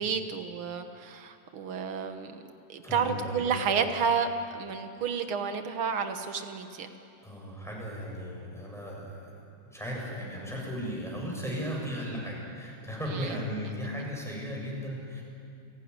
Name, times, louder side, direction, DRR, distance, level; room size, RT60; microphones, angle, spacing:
voice 1, 0.0-2.4 2.7-6.9 13.1-13.3, right 6 dB, 85° right, 7 dB, 2.2 m, -31 dB
voice 2, 2.8-3.8 7.2-9.3 9.7-15.2, equal, ahead, -3 dB, 7.3 m, -36 dB
30.0 x 18.0 x 9.7 m, 2.6 s
omnidirectional pair, 2.2 m